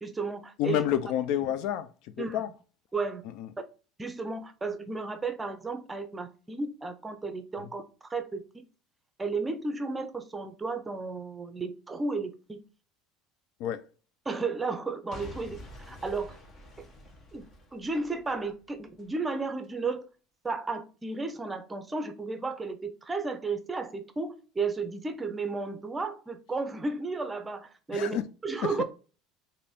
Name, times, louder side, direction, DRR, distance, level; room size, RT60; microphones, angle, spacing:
voice 1, 0.0-0.8 2.2-2.4 2.9-3.2 4.0-8.6 9.2-12.6 14.3-16.4 17.3-17.5 17.7-20.1 20.4-28.2 28.4-28.8, right 3 dB, 15° right, 0.6 m, -33 dB
voice 2, 0.6-2.5 3.2-3.5 7.6-7.7 13.6-13.9 27.9-28.2 28.6-28.8, left 10 dB, 70° left, 0.4 m, -30 dB
Boom / Shatter / Crushing, 15.1-19.1 19.6-19.7, left 1 dB, 40° left, 1.0 m, -48 dB
3.3 x 2.6 x 4.1 m
supercardioid pair, 95°, 0 cm